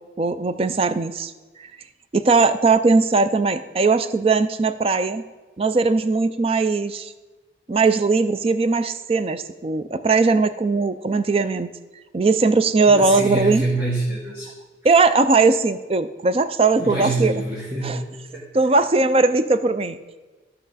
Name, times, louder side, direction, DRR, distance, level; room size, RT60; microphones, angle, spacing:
voice 1, 0.2-1.3 1.6-1.7 2.1-5.2 5.6-7.1 7.7-11.7 12.1-13.6 14.8-17.3 17.8-18.0 18.5-20.0, right 3 dB, 30° right, 12 dB, 0.4 m, -19 dB
voice 2, 12.9-14.5 16.8-18.0 18.3-18.5, right 2 dB, 15° right, -6 dB, 1.4 m, -25 dB
13.0 x 5.5 x 4.0 m, 1.2 s
head